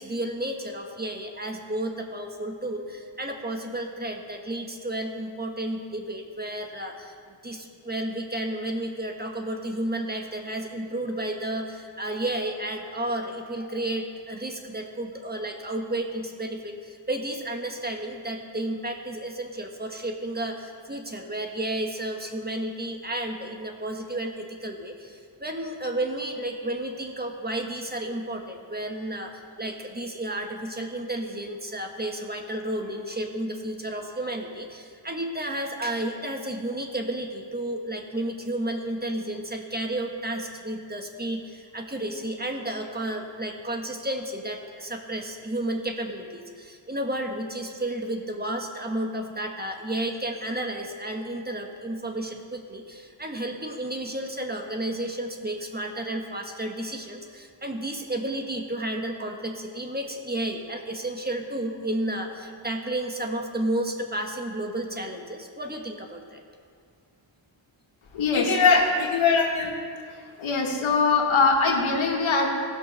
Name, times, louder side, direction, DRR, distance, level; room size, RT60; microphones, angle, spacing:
voice 1, 0.0-7.1 7.4-66.4, right 1 dB, 20° right, 3 dB, 1.3 m, -32 dB
voice 2, 68.1-69.8 70.4-72.5, left 4 dB, 80° left, 1 dB, 1.6 m, -21 dB
16.5 x 6.1 x 5.4 m, 2.1 s
cardioid pair, 70°, 47 cm